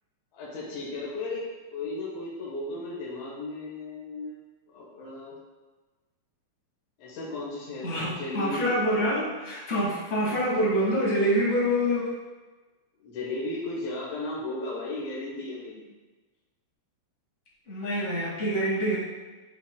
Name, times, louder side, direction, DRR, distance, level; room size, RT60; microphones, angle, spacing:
voice 1, 0.3-1.4 1.7-4.4 4.7-5.3 7.0-7.9 8.2-8.7 13.0-15.9, left 2 dB, 65° left, -7 dB, 2.3 m, -35 dB
voice 2, 7.8-12.1 17.7-19.0, equal, 85° left, -7 dB, 0.6 m, -26 dB
10.5 x 4.0 x 2.2 m, 1.2 s
omnidirectional pair, 4.1 m